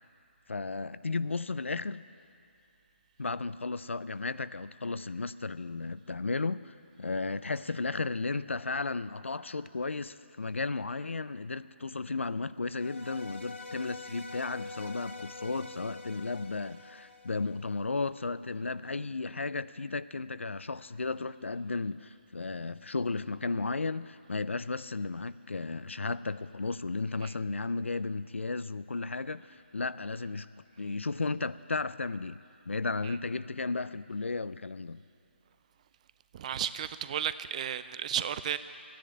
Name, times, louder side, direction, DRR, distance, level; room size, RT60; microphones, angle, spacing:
voice 1, 0.5-2.0 3.2-30.5 30.8-35.0, left 3 dB, 90° left, 16 dB, 0.5 m, -34 dB
sound 1, 12.7-18.0, left 3 dB, 70° left, 1.4 m, -45 dB
voice 2, 36.3-38.6, right 9 dB, 35° right, 13 dB, 0.5 m, -33 dB
14.0 x 10.5 x 8.5 m, 2.6 s
figure-of-eight pair, 150°, 6 cm